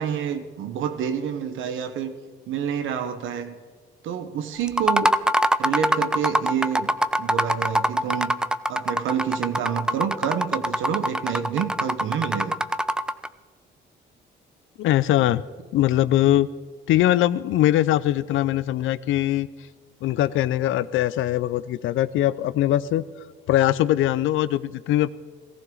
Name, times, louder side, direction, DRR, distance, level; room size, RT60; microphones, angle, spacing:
voice 1, 0.0-2.1 2.5-3.6 4.0-5.1 5.6-6.9 7.2-8.3 8.7-12.6 15.2-15.4, right 8 dB, 80° right, 9 dB, 1.2 m, -28 dB
sound 1, 4.7-13.3, right 1 dB, 5° right, 0.4 m, -23 dB
voice 2, 14.8-15.4 15.7-16.5 16.9-19.5 20.0-23.0 23.5-25.1, left 13 dB, 85° left, 17 dB, 0.5 m, -21 dB
17.5 x 15.0 x 3.9 m, 1.6 s
cardioid pair, 90°, 20 cm